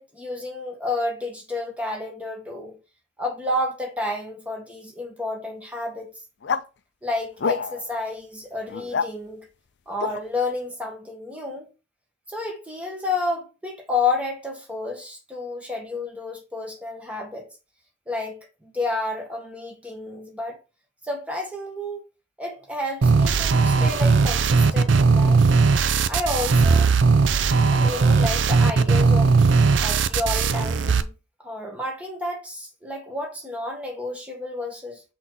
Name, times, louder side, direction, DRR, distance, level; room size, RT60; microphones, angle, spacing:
voice 1, 0.0-2.8 3.2-6.1 7.0-9.5 9.9-11.7 12.3-17.5 18.1-20.6 21.0-22.0 22.4-25.4 26.1-26.9 27.7-29.4 29.8-31.1 31.4-35.0, left 2 dB, 10° right, 1.7 m, -30 dB
sound 1, 6.4-6.6 7.4-7.9 8.7-9.1 10.0-10.2, left 5 dB, 65° left, 0.5 m, -26 dB
sound 2, 23.0-31.0, right 4 dB, 85° right, 0.5 m, -18 dB
6.1 x 3.9 x 4.1 m
head